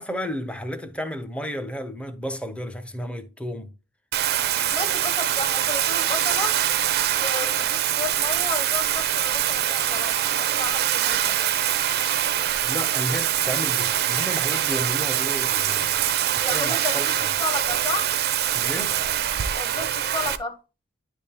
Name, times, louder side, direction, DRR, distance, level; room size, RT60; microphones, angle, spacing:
voice 1, 0.0-3.7 12.6-16.0 16.5-17.3 18.5-19.0, equal, 5° left, 0.6 m, -32 dB
Bathtub (filling or washing), 4.1-20.4, right 11 dB, 50° right, 0.4 m, -24 dB
voice 2, 4.5-6.5 7.1-11.4 16.3-17.1 17.4-18.1 19.6-20.6, left 3 dB, 25° left, 1.0 m, -32 dB
10.0 x 3.4 x 2.9 m
head